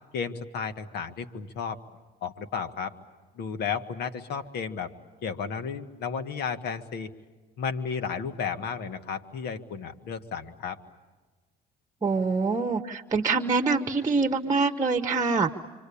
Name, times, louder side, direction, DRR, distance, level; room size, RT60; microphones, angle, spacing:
voice 1, 0.1-1.8 2.2-2.9 3.4-4.9 5.2-7.1 7.6-10.8, left 6 dB, 75° left, 9 dB, 1.8 m, -33 dB
voice 2, 12.0-15.5, right 4 dB, 20° right, 7 dB, 1.1 m, -25 dB
27.0 x 25.5 x 8.6 m, 1.3 s
cardioid pair, 110°, 17 cm